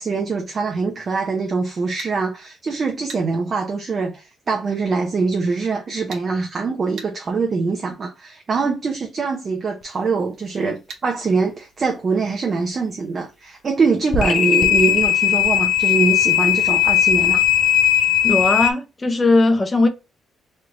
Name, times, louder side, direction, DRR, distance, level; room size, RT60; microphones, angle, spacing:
voice 1, 0.0-17.4, right 4 dB, 40° right, 0.7 m, -23 dB
sound 1, 2.0-2.2 3.1-3.3 6.1-6.3 7.0-7.1 10.9-11.1, right 5 dB, 80° right, 1.0 m, -36 dB
sound 2, 14.1-18.7, left 11 dB, 70° left, 0.5 m, -17 dB
voice 2, 18.2-19.9, left 2 dB, 25° left, 0.7 m, -18 dB
3.1 x 2.5 x 3.0 m
cardioid pair, 90°, 0 cm